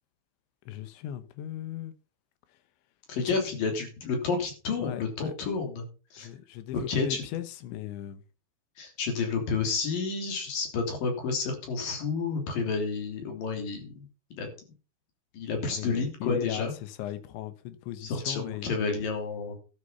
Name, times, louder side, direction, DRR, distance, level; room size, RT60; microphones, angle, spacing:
voice 1, 0.7-2.0 2.5-2.6 3.2-3.3 4.8-5.3 6.2-8.2 15.6-18.7, left 12 dB, 85° left, 3.5 m, -38 dB
voice 2, 3.1-5.8 6.1-6.3 6.7-7.2 8.8-14.1 14.3-14.5 15.3-16.7 18.0-19.6, left 4 dB, 55° left, 4.6 m, -30 dB
12.0 x 8.4 x 5.6 m
omnidirectional pair, 5.1 m